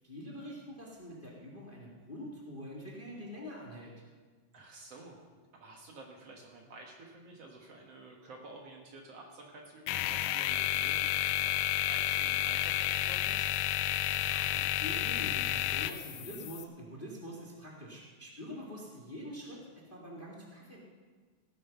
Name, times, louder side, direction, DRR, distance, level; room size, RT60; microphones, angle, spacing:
voice 1, 0.0-3.9 14.2-20.8, equal, 20° left, -2 dB, 1.7 m, -45 dB
voice 2, 4.5-5.2 5.6-13.5, right 2 dB, 55° right, 0 dB, 2.3 m, -51 dB
sound 1, 9.9-16.6, left 13 dB, 85° left, 2.2 m, -31 dB
16.5 x 9.5 x 5.9 m, 1.4 s
omnidirectional pair, 3.7 m